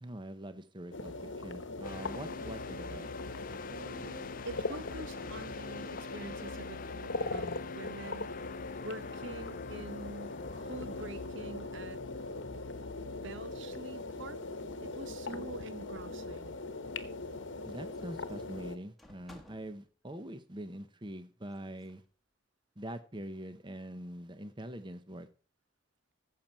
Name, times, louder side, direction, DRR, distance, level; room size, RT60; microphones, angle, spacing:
voice 1, 0.0-3.1 17.6-22.0 22.8-25.3, right 1 dB, 20° right, 0.8 m, -44 dB
sound 1, 0.9-18.8, left 2 dB, 65° left, 1.1 m, -41 dB
sound 2, 1.8-13.9, left 5 dB, 40° left, 0.5 m, -46 dB
voice 2, 3.7-8.4 8.8-12.0 13.0-14.4 14.8-16.6, right 2 dB, 65° right, 0.8 m, -46 dB
sound 3, 17.9-19.9 21.5-22.0, left 1 dB, ahead, 1.4 m, -59 dB
14.5 x 7.6 x 4.4 m
head